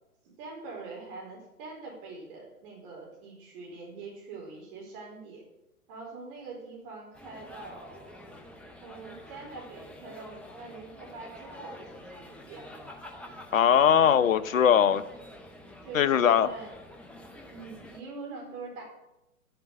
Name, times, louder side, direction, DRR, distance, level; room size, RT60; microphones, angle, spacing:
voice 1, 0.2-5.4 5.9-8.1 8.8-12.7 15.8-16.7 17.5-18.8, right 3 dB, 35° right, -2 dB, 4.3 m, -43 dB
sound 1, 7.1-18.0, left 1 dB, 5° left, 0.6 m, -48 dB
voice 2, 13.5-15.0 15.9-16.5, left 8 dB, 60° left, 13 dB, 0.9 m, -20 dB
11.5 x 8.0 x 8.1 m, 0.90 s
figure-of-eight pair, 125°, 44 cm